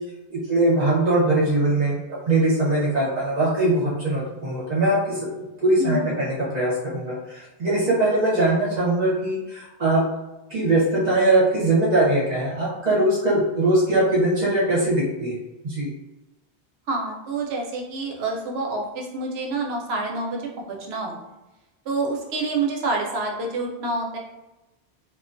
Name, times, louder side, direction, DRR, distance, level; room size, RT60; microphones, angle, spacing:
voice 1, 0.3-2.0 2.3-10.1 10.5-15.3 15.6-15.9, right 2 dB, 45° right, -7 dB, 0.8 m, -21 dB
voice 2, 5.8-6.1 16.9-21.1 21.8-24.2, right 3 dB, 85° right, 0 dB, 0.8 m, -27 dB
2.3 x 2.2 x 2.5 m, 1.0 s
omnidirectional pair, 1.0 m